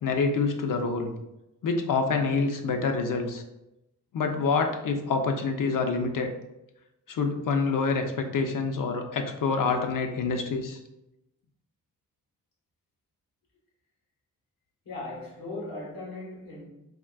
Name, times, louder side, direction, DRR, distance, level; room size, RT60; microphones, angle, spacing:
voice 1, 0.0-1.1 1.6-3.4 4.1-6.3 7.1-10.8, left 4 dB, 65° left, 0.5 m, -27 dB
voice 2, 14.8-16.7, left 2 dB, 90° left, 1.1 m, -38 dB
3.7 x 2.4 x 2.3 m
cardioid pair, 70°, 35 cm